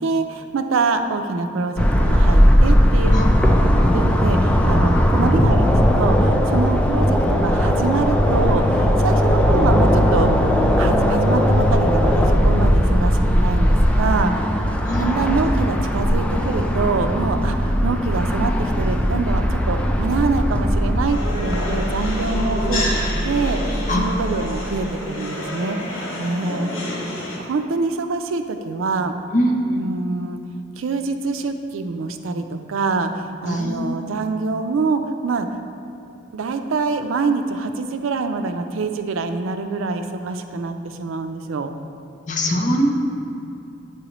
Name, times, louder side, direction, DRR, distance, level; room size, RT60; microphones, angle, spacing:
voice 1, 0.0-3.3 3.9-10.3 10.8-27.1 27.4-29.1 29.7-30.4 30.8-35.5 36.3-41.7, right 4 dB, 90° right, 7 dB, 0.4 m, -25 dB
sound 1, 1.8-21.1, equal, 5° left, 0.3 m, -18 dB
voice 2, 3.5-3.9 14.8-15.1 23.9-24.2 29.3-29.8 33.5-34.0 42.3-42.8, equal, 40° left, 1 dB, 0.7 m, -23 dB
sound 2, 16.7-24.9, equal, 30° right, 1.4 m, -26 dB
sound 3, 21.1-27.4, left 1 dB, 85° left, 1.3 m, -28 dB
8.5 x 4.8 x 3.0 m, 2.8 s
head